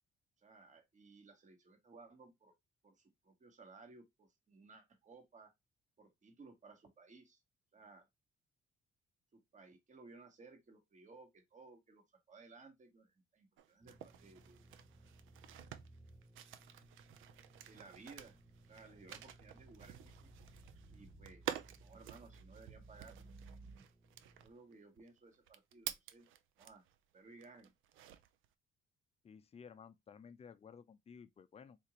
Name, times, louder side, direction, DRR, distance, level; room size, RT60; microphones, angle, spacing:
voice 1, 0.4-2.5 2.8-5.5 6.0-7.4 7.7-8.1 9.3-14.6 17.6-18.4 18.7-20.3 20.9-21.4 21.8-23.3 24.4-26.3 26.6-26.8 27.1-27.7, right 3 dB, 40° right, 1.2 m, -59 dB
sound 1, 13.6-27.0 27.4-28.5, right 11 dB, 85° right, 0.4 m, -50 dB
sound 2, 13.8-24.5, right 2 dB, 10° right, 0.8 m, -60 dB
voice 2, 29.2-31.8, left 6 dB, 30° left, 0.4 m, -55 dB
3.8 x 2.5 x 2.9 m
cardioid pair, 90°, 20 cm